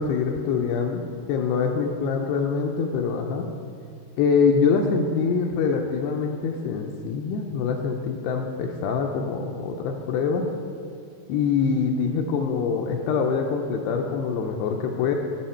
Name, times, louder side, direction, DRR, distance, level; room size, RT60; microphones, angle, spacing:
voice 1, 0.0-3.5 4.2-10.5 11.3-15.2, left 5 dB, 80° left, 2 dB, 2.4 m, -24 dB
13.0 x 5.8 x 4.3 m, 2.3 s
omnidirectional pair, 4.9 m